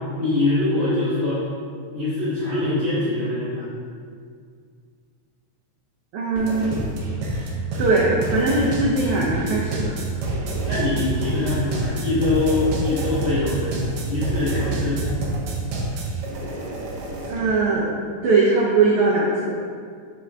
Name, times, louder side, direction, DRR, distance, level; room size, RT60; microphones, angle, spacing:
voice 1, 0.2-1.4 1.9-3.6 10.6-13.7 14.1-15.1, left 2 dB, 55° left, -11 dB, 0.7 m, -23 dB
voice 2, 6.1-6.9 7.8-9.9 17.3-17.9 18.2-19.6, right 3 dB, 90° right, -4 dB, 1.2 m, -20 dB
sound 1, 6.4-17.5, right 2 dB, 70° right, 1.5 m, -27 dB
6.1 x 4.8 x 3.3 m, 2.1 s
omnidirectional pair, 3.4 m